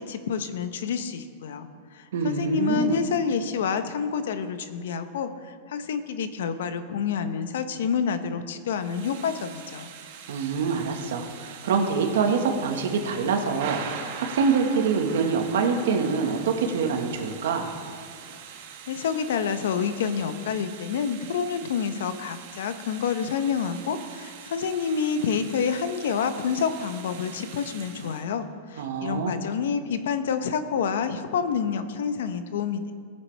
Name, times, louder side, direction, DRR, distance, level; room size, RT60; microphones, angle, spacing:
voice 1, 0.0-9.9 18.9-32.9, left 6 dB, 75° left, 10 dB, 0.8 m, -28 dB
voice 2, 2.1-3.0 10.3-17.7 28.8-29.3, right 5 dB, 80° right, 4 dB, 1.5 m, -25 dB
Thunder / Rain, 8.7-28.2, right 7 dB, 55° right, 1.3 m, -42 dB
19.0 x 7.5 x 3.4 m, 2.1 s
supercardioid pair, 170°, 0 cm